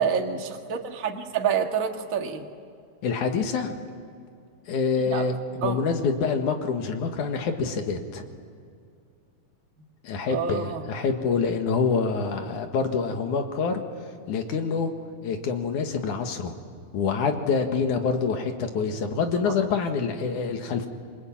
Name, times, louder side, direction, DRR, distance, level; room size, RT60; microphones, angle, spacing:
voice 1, 0.0-2.5 5.0-5.3 5.6-5.8 10.3-10.9 19.4-19.5, right 7 dB, 35° right, 3 dB, 1.7 m, -27 dB
voice 2, 3.0-3.7 4.7-8.2 10.0-13.8 14.3-14.9 15.2-16.5 16.9-20.9, left 5 dB, 75° left, 5 dB, 3.2 m, -26 dB
27.0 x 24.5 x 8.9 m, 2.3 s
omnidirectional pair, 3.5 m